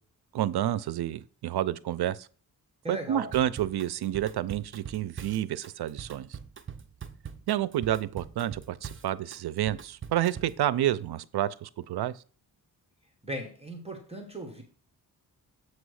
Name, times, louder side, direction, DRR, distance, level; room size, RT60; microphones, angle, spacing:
voice 1, 0.3-2.3 2.9-6.3 7.5-12.1, right 12 dB, 70° right, 0.5 m, -29 dB
voice 2, 2.8-3.3 13.2-14.6, right 1 dB, 15° right, 1.1 m, -37 dB
Drum kit / Drum, 3.3-10.6, right 7 dB, 30° right, 0.7 m, -42 dB
7.8 x 3.1 x 6.3 m
wide cardioid pair, 120°, 39 cm